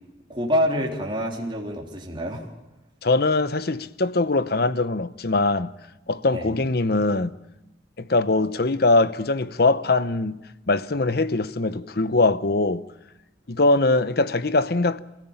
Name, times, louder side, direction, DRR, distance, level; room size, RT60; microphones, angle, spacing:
voice 1, 0.3-2.5 6.3-6.5, equal, 30° right, 3.6 m, -26 dB
voice 2, 3.0-5.7 6.1-7.4 8.0-10.4 10.7-12.9 13.5-15.0, left 2 dB, 60° left, 0.9 m, -22 dB
28.0 x 16.0 x 9.0 m
head